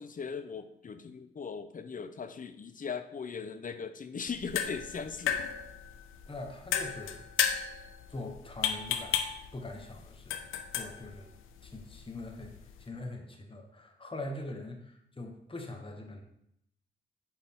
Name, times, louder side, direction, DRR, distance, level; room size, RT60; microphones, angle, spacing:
voice 1, 0.0-5.4, left 5 dB, 40° left, 10 dB, 0.7 m, -39 dB
sound 1, 4.3-12.9, left 8 dB, 90° left, 0.6 m, -35 dB
voice 2, 6.3-7.3 8.1-9.2 9.5-11.3 11.6-16.2, left 2 dB, 25° left, 2 dB, 1.3 m, -43 dB
8.9 x 3.9 x 3.7 m, 0.75 s
supercardioid pair, 50°, 20 cm